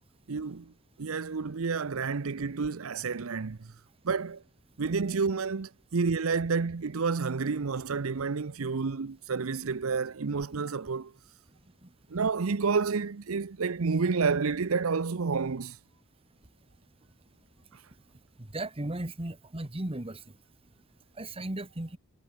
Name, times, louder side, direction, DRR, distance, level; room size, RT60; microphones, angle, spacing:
voice 1, 0.3-0.7 1.0-3.6 4.0-4.4 4.8-11.1 12.1-15.8, right 5 dB, 75° right, 0.7 m, -29 dB
voice 2, 18.5-20.2 21.2-22.0, right 1 dB, 25° right, 1.5 m, -35 dB
head